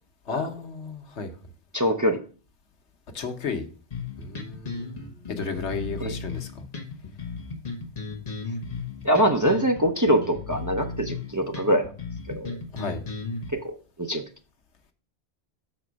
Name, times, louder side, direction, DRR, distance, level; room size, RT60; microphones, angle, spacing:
voice 1, 0.3-1.3 3.1-3.7 4.2-6.5 12.7-13.0, left 4 dB, 85° left, 1.2 m, -33 dB
voice 2, 1.7-2.2 6.0-6.1 9.0-11.9 12.3-12.5 13.5-14.2, equal, 20° right, 0.5 m, -24 dB
sound 1, 3.9-13.5, left 4 dB, 40° left, 1.2 m, -35 dB
6.8 x 4.3 x 6.1 m
omnidirectional pair, 1.1 m